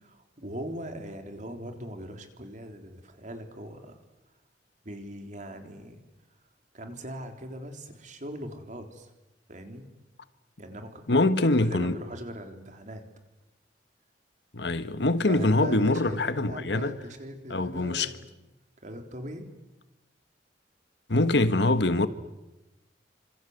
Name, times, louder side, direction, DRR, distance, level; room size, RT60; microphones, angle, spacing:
voice 1, 0.0-4.0 4.8-6.0 6.7-9.1 9.5-9.9 10.6-13.1 15.3-18.3 18.8-19.5, right 1 dB, 45° right, 3.7 m, -41 dB
voice 2, 11.1-12.0 14.5-16.9 17.5-18.1 21.1-22.1, left 2 dB, 70° left, 1.4 m, -24 dB
28.0 x 26.5 x 8.1 m
head